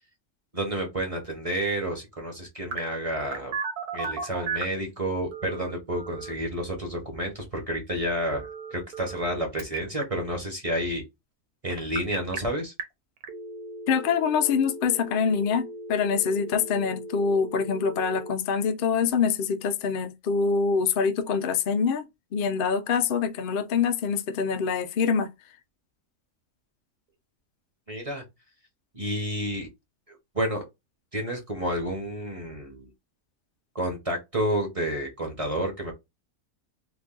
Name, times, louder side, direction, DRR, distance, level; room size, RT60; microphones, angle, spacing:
voice 1, 0.5-3.5 3.9-11.0 11.6-12.7 27.9-28.2 28.9-29.7 30.3-30.6 31.1-32.9 33.7-35.9, right 1 dB, 25° right, 0.9 m, -30 dB
Telephone, 2.7-4.8 5.3-6.3 8.3-9.3 9.6-10.0 11.7-12.4 12.8-12.9 13.2-18.3, right 4 dB, 85° right, 1.4 m, -36 dB
voice 2, 13.9-22.0 22.3-25.3, left 6 dB, 85° left, 0.4 m, -25 dB
3.0 x 2.5 x 3.7 m
omnidirectional pair, 1.6 m